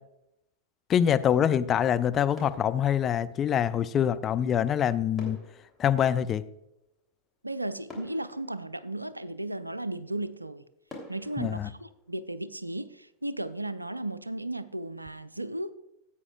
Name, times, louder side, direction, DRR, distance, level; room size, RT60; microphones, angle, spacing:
voice 1, 0.9-5.4 5.8-6.5 11.4-11.7, left 9 dB, 25° left, 11 dB, 0.4 m, -25 dB
sound 1, 2.3-3.8 5.2-7.1 7.5-7.6 7.9-9.5 10.0-10.1 10.9-12.8 13.1-13.3, left 1 dB, 10° left, 3.2 m, -49 dB
voice 2, 7.4-10.6 11.1-15.7, right 1 dB, 85° right, 16 dB, 0.4 m, -35 dB
16.0 x 8.4 x 2.4 m, 0.86 s
figure-of-eight pair, 90°, 0 cm